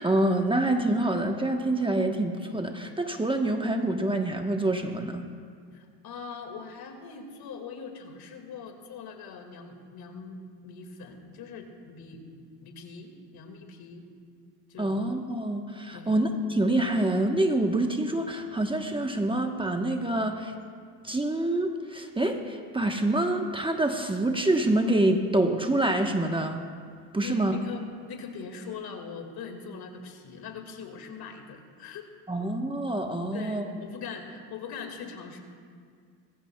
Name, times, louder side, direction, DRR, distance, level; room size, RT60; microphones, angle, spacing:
voice 1, 0.0-5.3 14.8-20.5 21.0-26.6 27.1-27.5 32.3-33.7, right 1 dB, 10° right, 4 dB, 1.1 m, -26 dB
voice 2, 5.7-14.1 14.7-15.0 15.9-16.2 27.2-32.1 33.3-35.4, left 5 dB, 50° left, 4 dB, 2.1 m, -42 dB
21.0 x 15.5 x 2.3 m, 2.1 s
hypercardioid pair, 70°, 48 cm